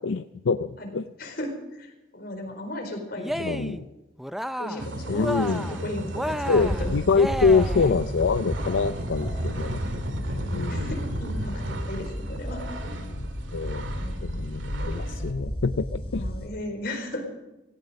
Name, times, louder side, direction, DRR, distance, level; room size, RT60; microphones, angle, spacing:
voice 1, 0.0-1.0 3.4-3.8 5.1-5.8 6.5-9.8 10.5-11.0 13.0-13.3 13.5-16.3, left 4 dB, 85° left, 11 dB, 0.5 m, -25 dB
voice 2, 1.2-3.7 4.6-6.9 10.3-12.6 14.0-14.6 16.1-17.3, left 1 dB, 55° left, 3 dB, 4.5 m, -36 dB
Cheering, 3.2-3.8 4.2-4.9 5.1-5.8 6.1-7.9, equal, ahead, 0.5 m, -32 dB
sound 1, 4.8-15.3, right 1 dB, 85° right, 2.0 m, -34 dB
sound 2, 6.5-16.5, equal, 35° left, 4.3 m, -34 dB
17.0 x 16.0 x 5.2 m, 0.98 s
head